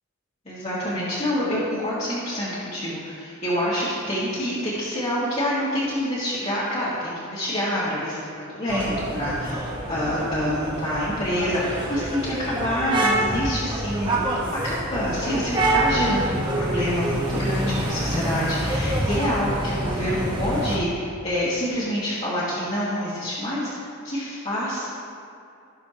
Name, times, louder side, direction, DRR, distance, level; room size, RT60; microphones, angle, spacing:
voice 1, 0.5-23.8 24.0-24.9, equal, 30° left, -11 dB, 1.7 m, -27 dB
sound 1, 8.7-20.8, right 1 dB, 20° right, 1.2 m, -26 dB
17.0 x 6.7 x 2.9 m, 2.6 s
head